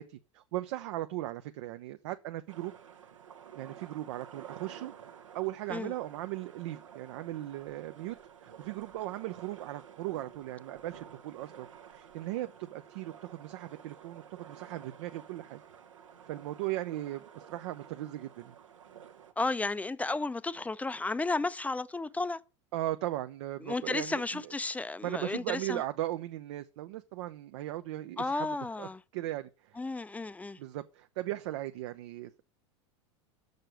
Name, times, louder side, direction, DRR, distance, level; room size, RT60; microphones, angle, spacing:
voice 1, 0.0-2.7 3.5-4.9 5.3-8.2 8.4-15.6 16.3-18.5 22.7-24.5 25.0-29.8 30.6-32.4, right 15 dB, 65° right, 0.7 m, -38 dB
sound 1, 2.5-19.3, right 8 dB, 85° right, 1.1 m, -52 dB
voice 2, 19.4-22.4 23.6-25.8 28.2-29.0 29.8-30.6, left 3 dB, 10° left, 0.6 m, -33 dB
6.7 x 6.6 x 7.6 m
hypercardioid pair, 90°, 16 cm